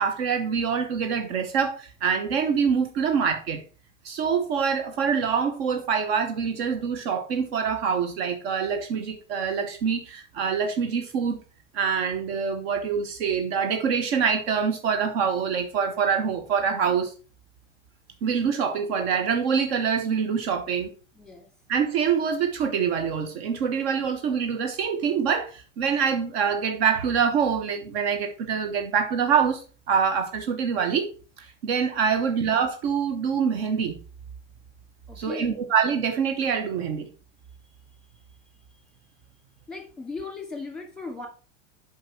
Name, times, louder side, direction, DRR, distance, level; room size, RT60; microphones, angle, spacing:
voice 1, 0.0-3.6 4.0-11.4 11.7-17.1 18.2-20.9 21.7-31.1 31.4-34.0 35.2-37.1, right 6 dB, 50° right, 1.1 m, -25 dB
voice 2, 21.2-21.5 32.3-32.4 35.1-35.7 37.6-37.7 38.1-38.2 39.7-41.3, left 3 dB, ahead, 2.6 m, -38 dB
7.9 x 5.1 x 4.4 m
figure-of-eight pair, 85°, 38 cm